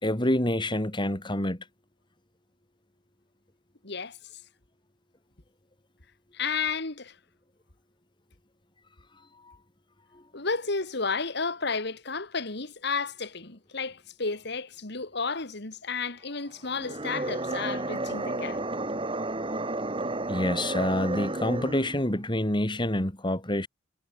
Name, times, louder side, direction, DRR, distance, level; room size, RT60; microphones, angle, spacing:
voice 1, 0.0-1.6 20.3-23.7, left 1 dB, 25° left, 3.8 m, -27 dB
voice 2, 3.8-4.2 6.3-7.1 10.3-18.6, left 4 dB, 65° left, 2.5 m, -32 dB
sound 1, 16.7-22.0, right 2 dB, 30° right, 3.1 m, -32 dB
head